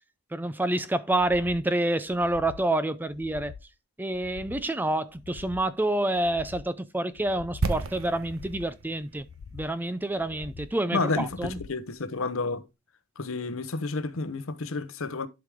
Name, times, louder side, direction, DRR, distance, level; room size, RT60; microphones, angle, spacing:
voice 1, 0.3-3.5 4.0-9.3 9.5-11.6, right 1 dB, 10° right, 0.4 m, -28 dB
sound 1, 1.1-1.7 2.1-2.7 3.1-3.7 4.1-4.7 5.1-5.7 6.1-6.7 7.1-7.7 8.1-8.7 9.1-9.7 10.2-10.7 11.2-11.8 12.2-12.3, left 6 dB, 85° left, 0.5 m, -46 dB
sound 2, 7.6-11.5 11.8-11.9, right 3 dB, 65° right, 0.9 m, -35 dB
voice 2, 10.9-12.6 13.2-15.3, left 3 dB, 65° left, 0.9 m, -30 dB
11.5 x 4.8 x 3.6 m
head